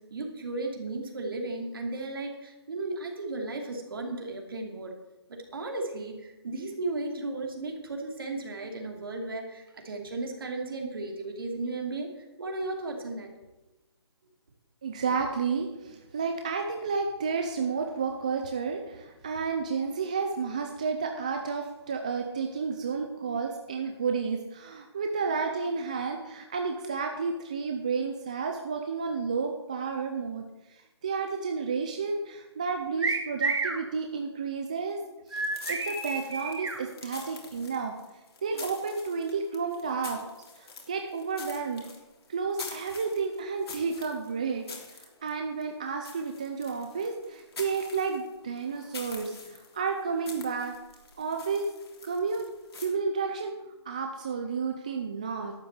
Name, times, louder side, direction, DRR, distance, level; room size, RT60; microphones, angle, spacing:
voice 1, 0.0-4.9 5.3-12.1 12.4-13.3, right 2 dB, 55° right, 2 dB, 2.6 m, -35 dB
voice 2, 14.8-35.0 35.3-37.9 38.4-40.2 40.6-41.8 42.3-50.8 51.2-51.7 52.0-52.5 52.8-53.5 53.9-55.5, right 5 dB, 15° right, 4 dB, 0.4 m, -31 dB
sound 1, 33.0-33.8 35.3-36.8, right 4 dB, 75° right, 2.9 m, -30 dB
sound 2, 35.3-52.9, left 4 dB, 60° left, 3.3 m, -46 dB
12.0 x 6.3 x 8.1 m, 1.0 s
hypercardioid pair, 175°, 14 cm